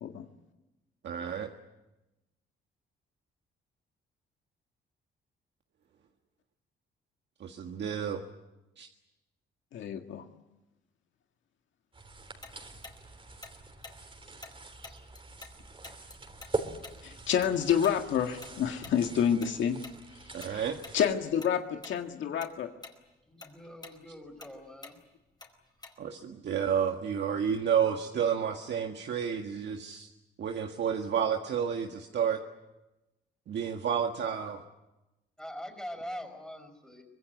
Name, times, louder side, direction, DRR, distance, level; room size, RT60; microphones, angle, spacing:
voice 1, 1.0-1.5 7.4-8.2 8.8-8.9 20.3-20.8 26.0-30.1 30.4-32.4 33.5-34.6, right 8 dB, 60° right, 4 dB, 1.7 m, -30 dB
voice 2, 9.7-10.3 17.0-19.8 20.3-20.7 20.9-22.7, left 8 dB, 70° left, 5 dB, 1.9 m, -29 dB
sound 1, 11.9-21.1, right 3 dB, 25° right, 3.7 m, -43 dB
Tick-tock, 12.4-15.6 15.8-20.5 20.8-21.0 21.4-22.0 22.3-26.2, left 3 dB, 20° left, 4.5 m, -49 dB
voice 3, 23.3-25.0 35.4-37.0, equal, 5° left, 5 dB, 4.9 m, -43 dB
24.5 x 21.0 x 9.4 m, 1.0 s
cardioid pair, 90°, 20 cm